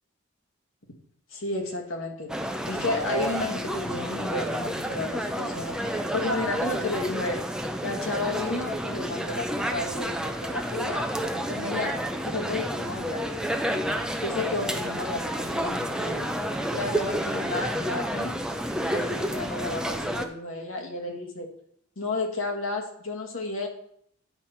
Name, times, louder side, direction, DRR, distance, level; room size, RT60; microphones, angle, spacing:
voice 1, 1.3-2.3 2.7-7.4 7.8-12.0 12.2-13.5 14.2-16.4 16.7-18.3 18.9-21.5 22.0-23.7, left 2 dB, 80° left, 1 dB, 1.6 m, -32 dB
sound 1, 2.3-20.3, equal, 5° right, 0.5 m, -30 dB
10.0 x 5.5 x 4.4 m, 0.68 s
head